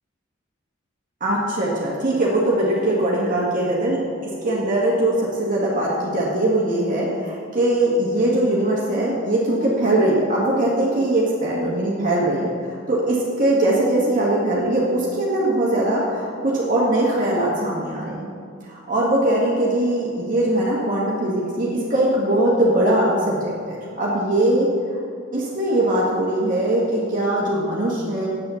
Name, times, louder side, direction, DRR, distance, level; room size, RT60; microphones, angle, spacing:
voice 1, 1.2-4.0 4.2-18.3 18.6-24.7 25.3-28.3, right 1 dB, 45° right, -5 dB, 1.8 m, -21 dB
9.1 x 8.6 x 7.0 m, 2.3 s
head